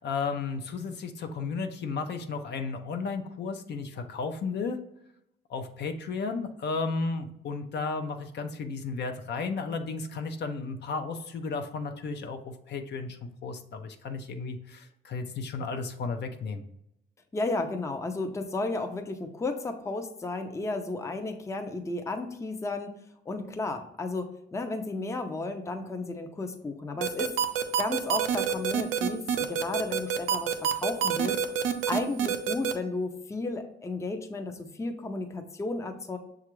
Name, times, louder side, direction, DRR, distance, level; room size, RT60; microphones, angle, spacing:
voice 1, 0.0-4.8 5.5-16.6, left 4 dB, 60° left, 6 dB, 0.6 m, -34 dB
voice 2, 17.3-22.9 23.3-27.3 27.8-31.4 31.9-36.2, left 2 dB, 15° left, 6 dB, 0.5 m, -33 dB
sound 1, 27.0-32.7, right 8 dB, 90° right, 0.5 m, -26 dB
6.5 x 2.4 x 3.0 m, 0.79 s
cardioid pair, 90°, 20 cm